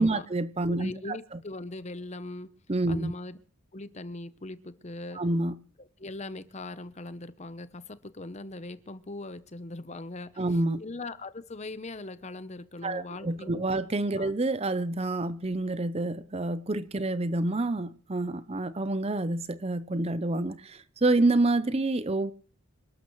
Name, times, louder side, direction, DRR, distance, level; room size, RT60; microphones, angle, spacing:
voice 1, 0.0-1.4 2.7-3.1 5.1-5.6 10.4-10.8 12.8-22.3, right 2 dB, 30° right, 0.6 m, -28 dB
voice 2, 0.7-2.5 2.9-3.4 3.7-5.2 5.8-13.6 14.2-14.3, left 2 dB, 30° left, 0.8 m, -40 dB
27.0 x 12.5 x 3.1 m
head